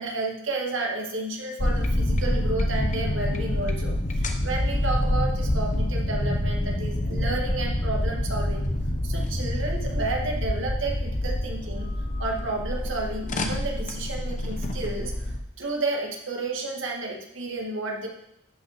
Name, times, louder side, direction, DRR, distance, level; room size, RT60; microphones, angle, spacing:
voice 1, 0.0-8.7 9.0-11.9 12.2-18.1, right 2 dB, 60° right, -1 dB, 2.0 m, -31 dB
sound 1, 1.6-15.4, left 1 dB, 35° left, 0.9 m, -27 dB
12.0 x 5.7 x 5.1 m, 0.80 s
head